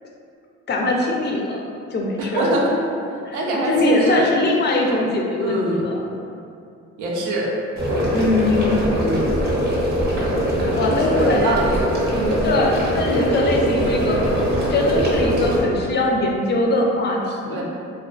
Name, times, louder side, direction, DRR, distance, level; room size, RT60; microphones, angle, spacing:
voice 1, 0.7-1.6 1.9-2.6 3.2-6.1 8.1-8.8 10.7-11.6 12.4-14.2 14.7-17.6, left 2 dB, 35° left, 0 dB, 0.4 m, -21 dB
voice 2, 2.3-2.7 3.3-4.3 5.4-5.8 7.0-7.5 9.0-9.3 10.9-11.7 12.1-12.4 17.5-17.6, right 1 dB, 80° right, -2 dB, 0.5 m, -23 dB
sound 1, 7.8-15.6, equal, 35° right, 0.7 m, -21 dB
2.3 x 2.3 x 2.3 m, 2.4 s
cardioid pair, 90°, 30 cm